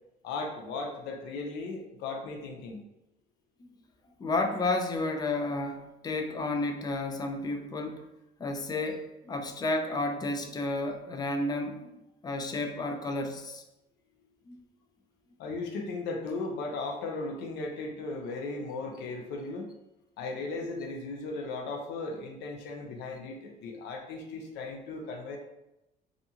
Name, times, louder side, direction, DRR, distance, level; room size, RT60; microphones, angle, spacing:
voice 1, 0.2-2.8 15.4-19.7 20.2-25.4, left 3 dB, 85° left, 2 dB, 0.6 m, -36 dB
voice 2, 4.2-8.1 8.4-11.9 12.2-13.6 14.5-14.6, left 2 dB, 25° left, 6 dB, 0.3 m, -31 dB
2.5 x 2.3 x 2.8 m, 0.91 s
cardioid pair, 110°, 17 cm